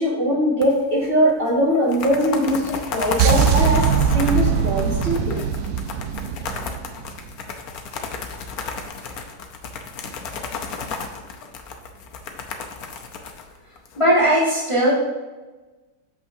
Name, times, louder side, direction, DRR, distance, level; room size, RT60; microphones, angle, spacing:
voice 1, 0.0-3.9 4.1-5.4, equal, 35° right, -5 dB, 1.9 m, -21 dB
sound 1, 0.6-1.0 1.3-1.4 1.7-14.2, left 5 dB, 70° left, 1.3 m, -33 dB
sound 2, 3.2-7.3, right 7 dB, 80° right, 1.1 m, -21 dB
voice 2, 14.0-14.9, equal, 20° left, -5 dB, 1.7 m, -18 dB
8.5 x 6.5 x 2.7 m, 1.2 s
omnidirectional pair, 1.7 m